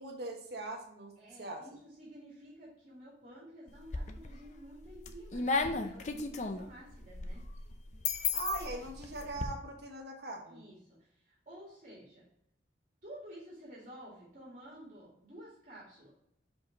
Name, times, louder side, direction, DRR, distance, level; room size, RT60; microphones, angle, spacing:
voice 1, 0.0-1.7 8.3-10.6, right 2 dB, 60° right, 1 dB, 1.3 m, -41 dB
voice 2, 1.2-7.4 10.5-12.2 13.0-16.2, equal, 45° right, -6 dB, 2.1 m, -52 dB
sound 1, 3.7-4.4 4.8-9.5, left 4 dB, 40° left, 0.5 m, -35 dB
5.2 x 4.7 x 3.9 m, 0.75 s
head